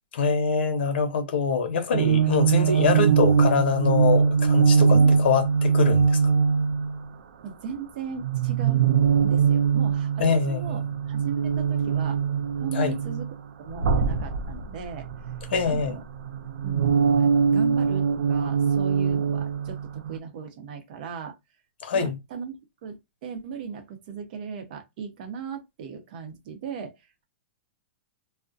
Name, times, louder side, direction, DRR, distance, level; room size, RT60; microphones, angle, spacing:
voice 1, 0.1-6.2 10.2-10.8 12.7-12.9 15.5-15.9 21.8-22.1, left 5 dB, 65° left, 0.8 m, -24 dB
sound 1, 1.9-7.1 8.2-13.3 13.7-15.8 16.1-20.2, right 6 dB, 90° right, 0.4 m, -22 dB
voice 2, 4.9-5.3 7.4-8.9 9.2-12.2 12.6-13.3 13.6-15.1 15.6-16.0 16.6-16.9 17.2-21.4 21.9-23.0 23.2-27.2, right 6 dB, 50° right, 0.7 m, -37 dB
2.4 x 2.1 x 2.5 m
hypercardioid pair, 155°, 6 cm